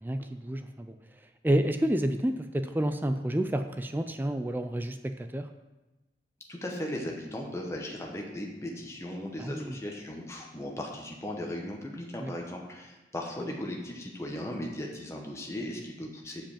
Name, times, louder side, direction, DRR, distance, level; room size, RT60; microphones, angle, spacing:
voice 1, 0.0-1.0 1.4-5.5 9.4-9.7 12.2-12.3, right 1 dB, 10° right, 8 dB, 0.4 m, -29 dB
voice 2, 6.5-16.4, left 1 dB, 15° left, 0 dB, 1.1 m, -37 dB
7.0 x 5.2 x 7.3 m, 1.1 s
head